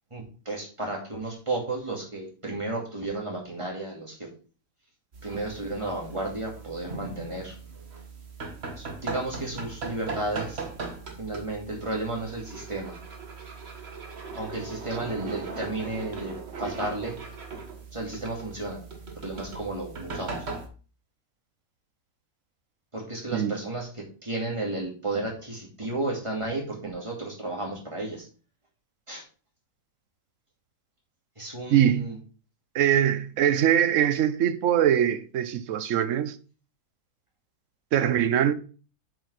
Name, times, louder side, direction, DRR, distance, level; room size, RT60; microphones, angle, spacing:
voice 1, 0.1-4.3 5.2-7.5 8.8-10.6 11.2-13.0 14.3-17.2 17.9-18.8 19.2-20.4 22.9-28.3 29.1-29.2 31.4-32.2, right 2 dB, 20° right, 2.4 m, -33 dB
sound 1, 5.1-20.7, right 4 dB, 45° right, 1.5 m, -39 dB
voice 2, 31.7-32.1 32.7-36.4 37.9-38.5, right 10 dB, 65° right, 0.9 m, -22 dB
7.5 x 5.2 x 4.8 m
omnidirectional pair, 1.6 m